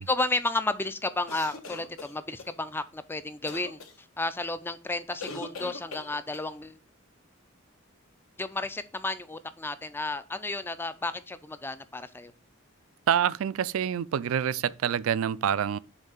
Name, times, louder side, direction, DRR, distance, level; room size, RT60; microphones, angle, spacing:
voice 1, 0.1-6.8 8.4-12.3, left 2 dB, 10° left, 0.4 m, -32 dB
sound 1, 1.3-2.5 3.5-3.9 5.2-6.5, left 3 dB, 70° left, 1.2 m, -41 dB
voice 2, 13.1-15.8, right 9 dB, 75° right, 0.3 m, -26 dB
7.1 x 3.3 x 5.5 m
head